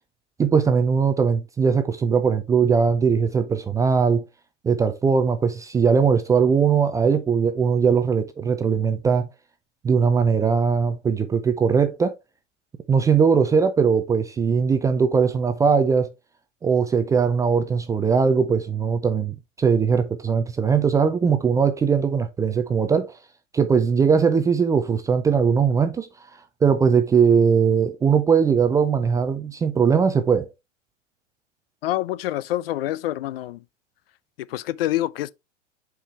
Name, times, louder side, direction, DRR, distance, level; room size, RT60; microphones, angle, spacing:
voice 1, 0.4-4.2 4.6-9.3 9.8-12.2 12.9-16.1 16.6-23.2 23.5-26.1 26.6-30.5, right 6 dB, 10° right, 0.4 m, -20 dB
voice 2, 31.8-33.6 34.4-35.3, left 14 dB, 50° left, 0.5 m, -26 dB
7.3 x 4.7 x 3.3 m
hypercardioid pair, 110°, 37 cm